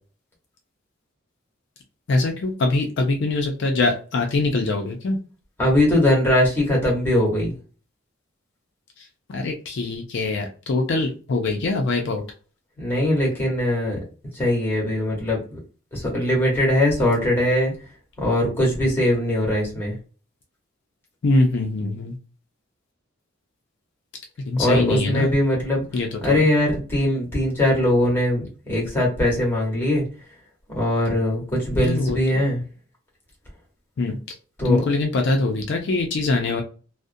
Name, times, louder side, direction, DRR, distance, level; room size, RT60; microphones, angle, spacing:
voice 1, 2.1-5.2 9.3-12.2 21.2-22.2 24.5-25.3 25.9-26.4 31.8-32.2 34.0-34.2 34.6-36.6, left 2 dB, 60° left, 3 dB, 0.4 m, -23 dB
voice 2, 5.6-7.5 12.8-14.0 14.3-15.6 15.9-17.7 18.2-20.0 24.5-25.8 26.2-30.0 30.7-32.6 34.6-34.8, left 1 dB, 10° left, -3 dB, 1.0 m, -21 dB
2.5 x 2.0 x 2.5 m, 0.36 s
head